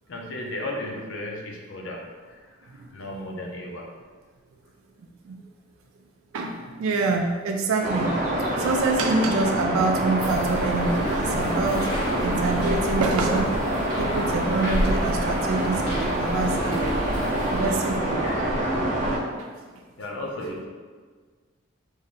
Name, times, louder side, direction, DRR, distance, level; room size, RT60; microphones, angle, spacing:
voice 1, 0.1-3.9 18.2-18.7 20.0-20.7, left 1 dB, 65° left, 0 dB, 0.6 m, -35 dB
voice 2, 6.3-8.2 8.6-11.9 12.2-17.0 17.5-18.3 19.4-19.5, right 3 dB, 85° right, 3 dB, 0.4 m, -26 dB
sound 1, 7.8-19.2, right 1 dB, 35° right, 0.6 m, -26 dB
sound 2, 10.2-17.6, equal, 85° left, 1.4 m, -30 dB
3.1 x 2.6 x 4.0 m, 1.5 s
head